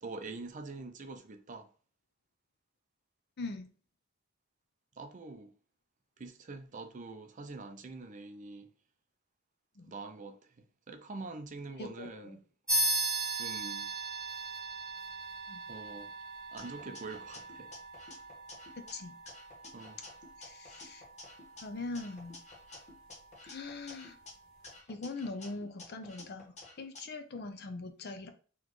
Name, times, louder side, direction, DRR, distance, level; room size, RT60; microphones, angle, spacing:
voice 1, 0.0-1.7 5.0-5.5 6.2-8.7 9.9-10.5 10.9-12.4 13.3-13.9 15.7-16.1 16.5-17.7 19.7-20.0, right 3 dB, 40° right, 0.5 m, -45 dB
voice 2, 3.4-3.7 9.8-9.9 11.8-12.4 15.5-15.6 18.8-19.1 20.4-21.0 21.6-22.4 23.4-24.2 24.9-28.3, left 3 dB, 55° left, 0.6 m, -42 dB
sound 1, 12.7-22.6, right 2 dB, ahead, 1.5 m, -38 dB
sound 2, 16.6-18.9 19.3-21.6 21.9-24.3 24.6-27.0, left 3 dB, 35° left, 1.1 m, -52 dB
4.1 x 3.0 x 3.0 m
head